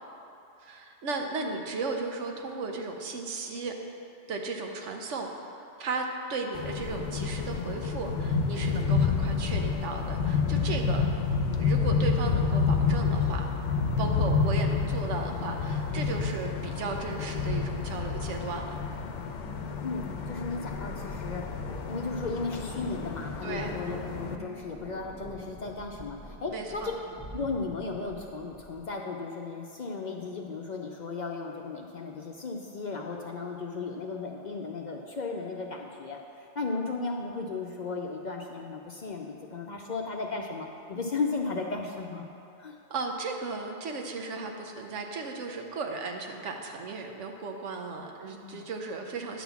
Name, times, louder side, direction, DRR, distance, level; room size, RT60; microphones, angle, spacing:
voice 1, 0.6-3.7 4.3-11.0 11.6-13.5 13.9-18.8 23.4-23.8 26.5-26.9 42.9-49.4, right 3 dB, 85° right, 3 dB, 1.2 m, -35 dB
voice 2, 1.4-1.7 19.8-21.5 21.9-26.9 27.3-42.2 42.6-42.8 48.2-48.6, left 4 dB, 50° left, 1 dB, 0.6 m, -35 dB
sound 1, 6.5-24.4, left 5 dB, 85° left, 1.0 m, -29 dB
sound 2, 19.4-28.9, right 1 dB, 5° left, 1.0 m, -45 dB
10.0 x 4.1 x 7.0 m, 2.7 s
omnidirectional pair, 1.2 m